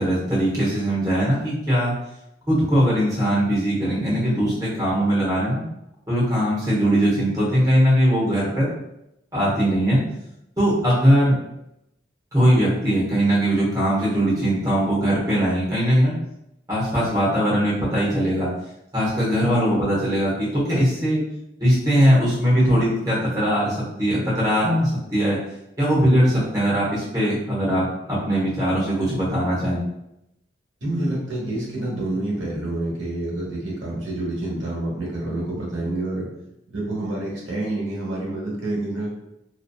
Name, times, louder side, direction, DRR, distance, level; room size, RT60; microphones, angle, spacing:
voice 1, 0.0-2.0 2.5-5.6 6.1-8.7 9.3-10.0 10.6-11.3 12.3-16.1 16.7-18.5 18.9-21.2 21.6-25.4 25.8-29.8, equal, 20° right, -7 dB, 0.9 m, -20 dB
voice 2, 30.8-36.3 36.7-39.1, right 1 dB, 90° right, -4 dB, 1.0 m, -28 dB
2.6 x 2.2 x 2.2 m, 0.83 s
head